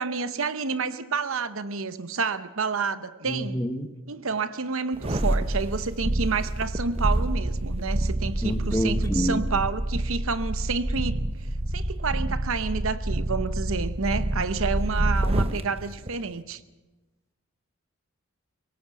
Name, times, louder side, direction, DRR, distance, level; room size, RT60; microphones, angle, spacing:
voice 1, 0.0-3.7 4.1-11.2 11.7-16.6, right 4 dB, 75° right, 12 dB, 0.9 m, -29 dB
voice 2, 3.3-3.9 8.4-9.4, equal, 15° left, 7 dB, 1.2 m, -27 dB
sound 1, 4.9-15.6 16.0-16.2, right 1 dB, 25° right, 0.9 m, -27 dB
22.5 x 18.5 x 7.1 m, 1.1 s
head